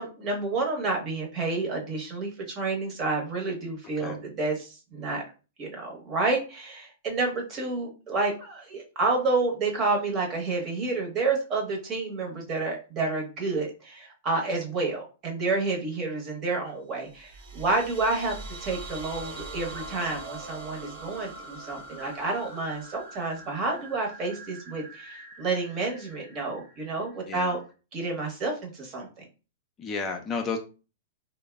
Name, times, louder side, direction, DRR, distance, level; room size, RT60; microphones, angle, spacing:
voice 1, 0.0-5.2 5.6-27.6 27.9-29.3, right 3 dB, 35° right, 1 dB, 0.9 m, -29 dB
sound 1, 17.1-27.7, right 2 dB, 65° right, 1.0 m, -43 dB
voice 2, 29.8-30.6, left 4 dB, 25° left, 3 dB, 0.4 m, -31 dB
2.9 x 2.0 x 2.2 m, 0.33 s
hypercardioid pair, 130°, 0 cm